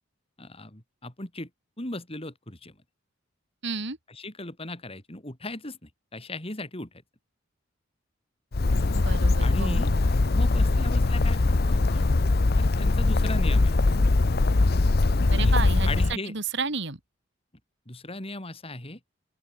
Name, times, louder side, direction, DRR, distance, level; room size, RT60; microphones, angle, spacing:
voice 1, 0.4-1.5 1.8-2.8 4.1-6.9 9.4-9.9 10.3-12.1 12.6-13.7 15.3-15.5 15.8-16.3 17.9-19.0, left 2 dB, 30° left, 3.8 m, -37 dB
voice 2, 3.6-4.0 8.9-10.0 15.3-17.0, right 4 dB, 60° right, 3.4 m, -32 dB
Bird, 8.5-16.1, left 2 dB, 50° left, 0.7 m, -22 dB
open air
head